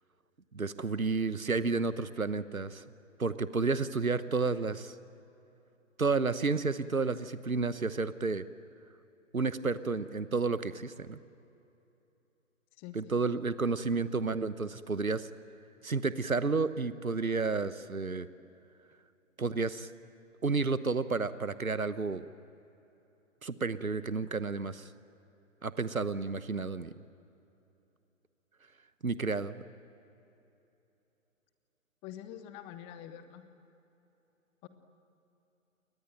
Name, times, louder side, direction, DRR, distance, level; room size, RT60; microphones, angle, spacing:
voice 1, 0.5-2.8 3.2-4.9 6.0-8.4 9.3-11.2 12.9-15.3 15.8-18.3 19.4-19.9 20.4-22.2 23.4-24.9 25.6-26.9 29.0-29.6, right 4 dB, 85° right, 14 dB, 1.1 m, -31 dB
voice 2, 12.8-13.1 32.0-33.4 34.6-34.7, left 11 dB, 15° left, 11 dB, 1.0 m, -46 dB
29.5 x 22.0 x 9.2 m, 2.9 s
figure-of-eight pair, 130°, 41 cm